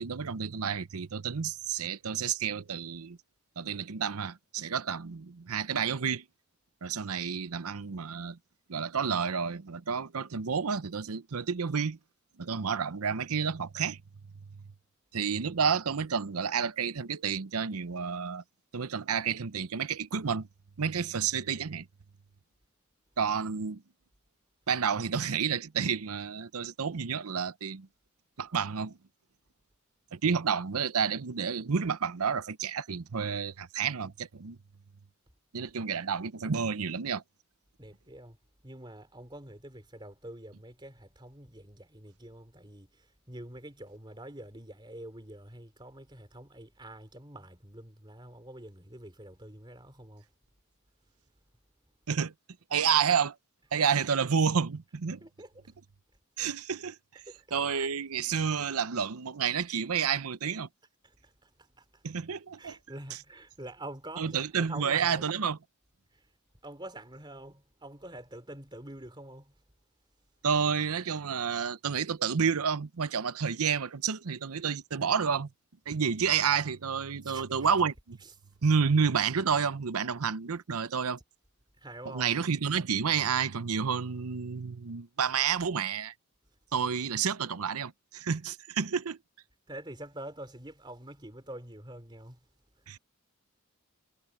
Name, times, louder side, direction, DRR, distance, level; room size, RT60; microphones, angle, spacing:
voice 1, 0.0-3.2 3.6-6.2 6.8-8.4 8.7-12.0 12.4-14.0 15.1-18.4 18.7-20.5 20.8-21.9 23.2-23.8 24.7-27.9 28.4-29.0 30.1-34.6 35.5-37.2 52.1-52.3 52.7-53.3 53.7-55.2 56.4-57.2 57.5-60.7 62.0-62.7 64.2-65.6 70.4-75.5 75.9-78.2 78.6-81.2 82.1-86.1 86.7-89.2 92.9-93.0, right 6 dB, 85° right, 0.7 m, -30 dB
voice 2, 37.8-38.4 38.6-50.2 55.2-55.7 57.3-57.4 61.0-62.0 62.6-65.3 66.1-66.2 66.6-69.5 77.2-77.6 81.8-82.3 89.7-92.4, right 1 dB, 20° right, 3.8 m, -46 dB
head